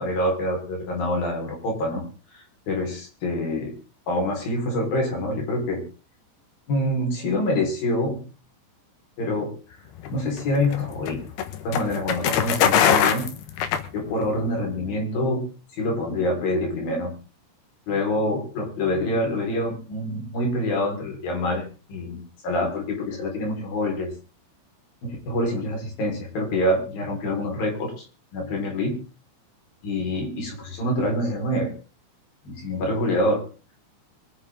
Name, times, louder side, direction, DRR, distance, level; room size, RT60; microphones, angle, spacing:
voice 1, 0.0-2.0 2.3-3.7 4.1-5.8 6.7-8.2 9.2-9.8 10.1-11.2 11.6-13.3 13.9-17.1 17.9-24.1 25.0-28.1 28.3-29.0 29.8-31.7 32.4-33.4, left 1 dB, 50° left, 0 dB, 6.0 m, -26 dB
sound 1, 10.0-14.4, left 8 dB, 65° left, 2.9 m, -23 dB
24.5 x 9.7 x 3.8 m, 0.35 s
omnidirectional pair, 5.5 m